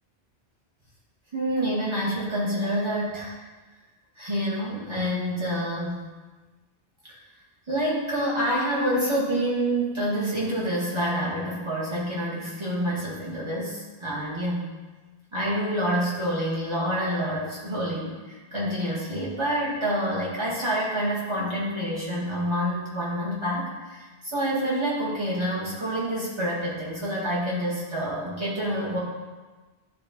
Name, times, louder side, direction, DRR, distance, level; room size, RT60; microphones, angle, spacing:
voice 1, 1.3-3.3 4.2-6.0 7.1-7.2 7.7-14.6 15.3-29.0, equal, 25° right, -7 dB, 2.1 m, -27 dB
11.0 x 4.1 x 3.1 m, 1.3 s
omnidirectional pair, 1.1 m